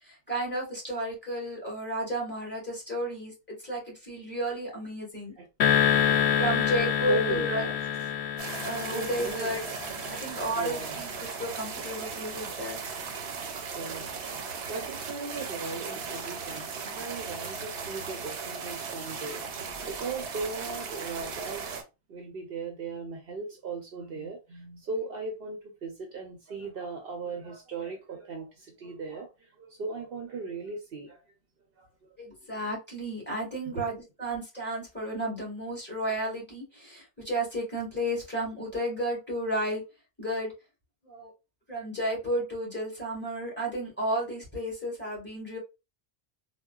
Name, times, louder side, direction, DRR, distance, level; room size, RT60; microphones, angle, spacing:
voice 1, 0.0-5.3 6.4-7.6 8.6-9.6 10.1-12.8 32.2-39.8 40.2-40.5 41.0-41.3 41.7-45.6, right 1 dB, 10° left, 1.7 m, -32 dB
sound 1, 5.6-10.1, left 9 dB, 85° left, 0.9 m, -26 dB
voice 2, 5.9-6.2 7.1-7.8 8.9-9.5 10.5-11.0 13.7-14.1 14.7-21.7 22.1-31.2 31.8-32.2 33.7-33.8, right 3 dB, 65° right, 0.8 m, -38 dB
sound 2, 8.4-21.8, right 5 dB, 90° right, 0.9 m, -37 dB
3.6 x 2.2 x 2.3 m
omnidirectional pair, 1.1 m